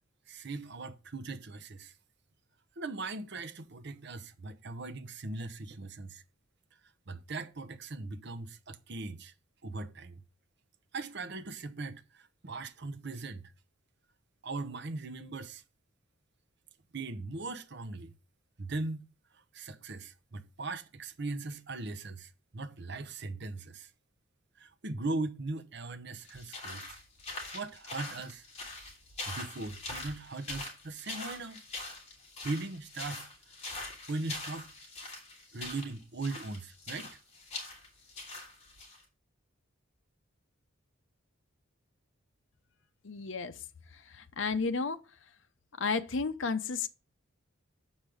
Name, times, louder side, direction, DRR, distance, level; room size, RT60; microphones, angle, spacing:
voice 1, 0.3-1.9 2.8-6.2 7.1-9.3 9.6-10.2 10.9-13.4 14.4-15.6 16.9-18.1 18.6-19.1 19.5-23.9 24.6-27.0 27.5-28.4 29.3-31.6 32.4-33.3 34.1-34.7 35.5-37.2, right 3 dB, 55° right, 0.9 m, -39 dB
sound 1, 26.2-39.0, left 2 dB, 30° left, 3.0 m, -43 dB
voice 2, 43.0-45.0 45.8-46.9, left 4 dB, 60° left, 0.7 m, -33 dB
7.3 x 5.1 x 6.3 m
head